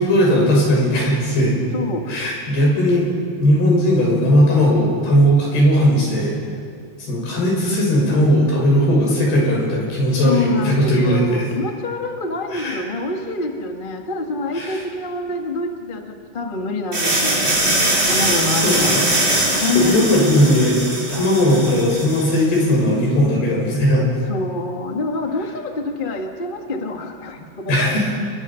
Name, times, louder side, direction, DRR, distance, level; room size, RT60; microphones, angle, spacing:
voice 1, 0.0-1.6 2.1-3.1 3.4-6.4 7.0-11.2 12.5-12.8 14.5-14.8 18.6-19.0 19.6-20.8 21.1-24.0 27.7-28.0, equal, 85° left, -2 dB, 8.3 m, -17 dB
voice 2, 1.7-2.3 10.2-17.4 18.1-19.0 19.5-20.6 24.3-27.8, left 2 dB, 60° left, 3 dB, 0.5 m, -26 dB
sound 1, 16.9-22.6, right 1 dB, 30° right, 6.0 m, -21 dB
30.0 x 21.5 x 5.8 m, 2.3 s
omnidirectional pair, 4.4 m